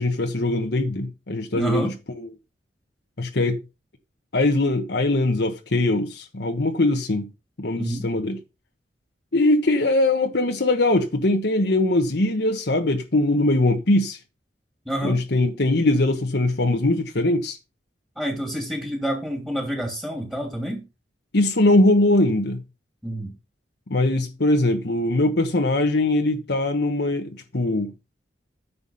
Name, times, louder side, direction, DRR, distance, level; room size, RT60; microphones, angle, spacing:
voice 1, 0.0-1.9 3.2-3.6 4.3-7.3 7.6-8.4 9.3-14.2 15.0-17.6 21.3-22.6 23.9-27.9, left 2 dB, 65° left, 1.2 m, -21 dB
voice 2, 1.5-1.9 7.7-8.1 14.9-15.2 18.2-20.8 23.0-23.3, equal, 5° right, 2.6 m, -28 dB
9.8 x 6.9 x 5.5 m
head